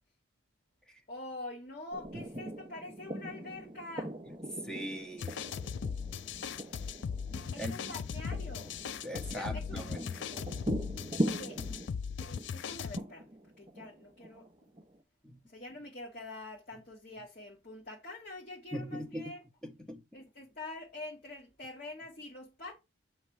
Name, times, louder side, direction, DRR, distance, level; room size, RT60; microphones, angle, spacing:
voice 1, 1.1-4.1 7.5-8.8 9.3-9.8 11.2-11.6 12.3-13.2 13.6-14.5 15.5-19.4 20.1-22.8, left 2 dB, 45° left, 1.7 m, -45 dB
sound 1, 1.9-15.0, right 1 dB, 25° right, 0.7 m, -41 dB
voice 2, 2.1-2.5 4.3-4.4 4.6-5.4 7.6-7.8 9.0-10.2 15.2-15.4 18.7-19.3 19.6-20.0, equal, 5° left, 0.9 m, -41 dB
sound 2, 5.2-13.0, left 6 dB, 65° left, 0.4 m, -38 dB
7.5 x 3.2 x 4.6 m
head